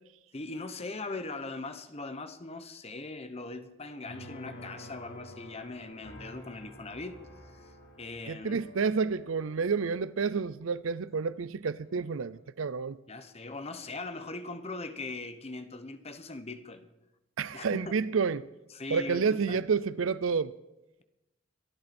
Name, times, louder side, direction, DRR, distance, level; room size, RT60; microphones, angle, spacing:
voice 1, 0.3-8.6 13.1-16.9 17.5-17.9 18.7-19.6, left 3 dB, 30° left, 1.0 m, -40 dB
sound 1, 4.1-11.3 11.7-12.4, left 1 dB, 60° left, 3.4 m, -50 dB
voice 2, 8.3-13.0 17.4-18.5 18.9-20.5, right 5 dB, 70° right, 0.5 m, -29 dB
23.0 x 11.5 x 4.4 m
head